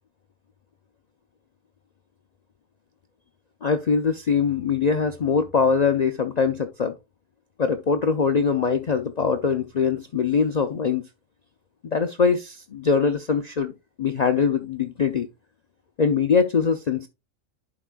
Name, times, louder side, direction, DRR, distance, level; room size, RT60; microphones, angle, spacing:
voice 1, 3.6-6.9 7.6-11.0 11.8-13.7 14.0-15.3 16.0-17.1, left 5 dB, 65° left, 0.4 m, -22 dB
11.0 x 4.8 x 2.3 m
omnidirectional pair, 1.4 m